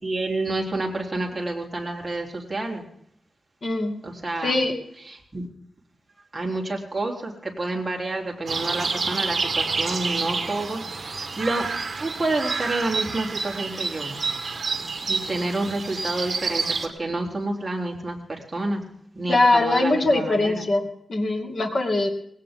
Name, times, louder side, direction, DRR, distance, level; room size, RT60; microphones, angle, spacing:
voice 1, 0.0-2.8 4.0-4.6 5.0-5.5 6.3-11.7 12.0-14.2 15.1-18.8 19.1-20.7, right 2 dB, 15° right, -1 dB, 3.9 m, -29 dB
voice 2, 3.6-3.9 4.4-4.7 19.3-22.1, left 2 dB, 45° left, 3 dB, 2.6 m, -22 dB
sound 1, 8.5-16.9, right 4 dB, 45° right, 2.2 m, -28 dB
20.0 x 17.5 x 3.9 m, 0.69 s
wide cardioid pair, 130°, 0 cm